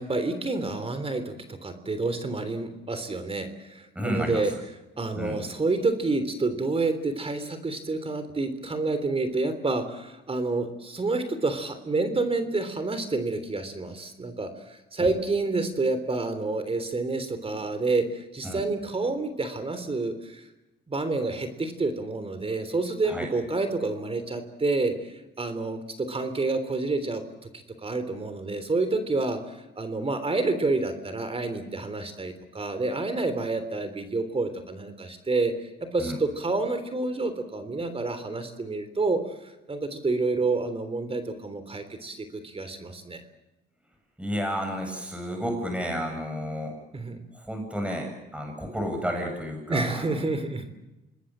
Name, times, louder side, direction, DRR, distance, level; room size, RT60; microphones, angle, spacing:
voice 1, 0.0-4.5 5.0-20.5 20.9-27.2 27.8-43.2 46.9-47.2 49.7-50.7, right 3 dB, 30° right, 10 dB, 3.5 m, -29 dB
voice 2, 3.9-4.5 5.1-5.4 15.0-15.1 18.4-18.7 23.0-23.3 36.0-36.2 44.2-46.7 47.3-50.2, equal, 5° right, 2 dB, 7.8 m, -31 dB
27.0 x 20.0 x 7.6 m, 1.0 s
cardioid pair, 90°, 20 cm